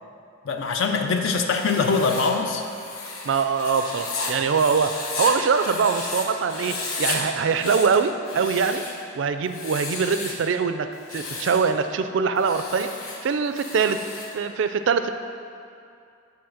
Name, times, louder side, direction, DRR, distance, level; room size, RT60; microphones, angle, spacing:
voice 1, 0.5-2.6, left 4 dB, 60° left, 4 dB, 0.4 m, -23 dB
Writing, 1.5-6.2 6.5-7.2 7.5-9.0 9.5-10.4 10.9-11.7 12.4-14.3, left 3 dB, 85° left, 1.0 m, -33 dB
voice 2, 3.3-8.8 9.1-12.9 13.2-14.0 14.3-15.1, right 5 dB, 60° right, 9 dB, 0.3 m, -23 dB
7.1 x 3.9 x 6.3 m, 2.5 s
head